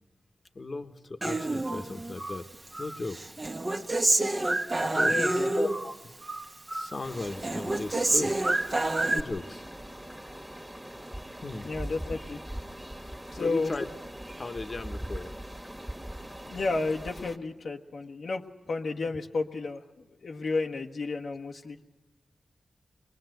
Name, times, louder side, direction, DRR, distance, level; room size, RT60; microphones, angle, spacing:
voice 1, 0.5-2.5 2.8-3.2 4.8-5.9 6.7-8.3 9.1-9.6 11.4-11.7 13.4-13.9 14.4-15.3 16.4-16.6, left 3 dB, 45° left, 7 dB, 1.3 m, -36 dB
Human voice, 1.2-2.4 2.7-5.9 6.2-7.0 7.2-9.2, right 2 dB, 35° right, 1.4 m, -28 dB
voice 2, 5.1-5.5 11.6-12.4 13.3-13.7 16.5-21.8, left 3 dB, 80° left, 2 dB, 1.3 m, -32 dB
sound 1, 7.0-17.4, right 1 dB, 5° right, 1.8 m, -41 dB
23.5 x 20.5 x 7.9 m, 1.1 s
cardioid pair, 70°, 0 cm